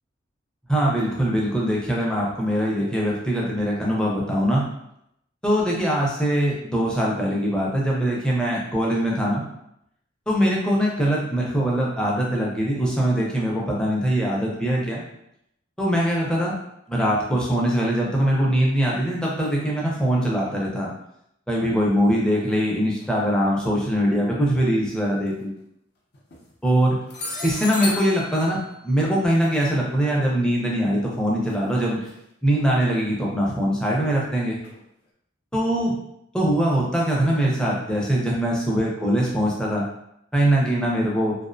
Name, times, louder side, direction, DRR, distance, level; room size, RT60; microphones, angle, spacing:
voice 1, 0.7-4.6 5.4-9.4 10.3-15.0 15.8-16.5 16.9-20.9 21.5-25.5 26.6-27.0 27.4-28.6 28.8-32.0 32.4-34.6 35.5-36.0 36.3-39.8 40.3-41.4, equal, 5° left, -4 dB, 0.4 m, -22 dB
sound 1, 23.0-23.1 25.1-25.3 26.1-26.5 27.1-30.1 31.5-31.7 32.0-32.1 32.8-32.9 34.6-34.8, left 2 dB, 55° left, 0.5 m, -35 dB
2.4 x 2.0 x 2.5 m, 0.77 s
head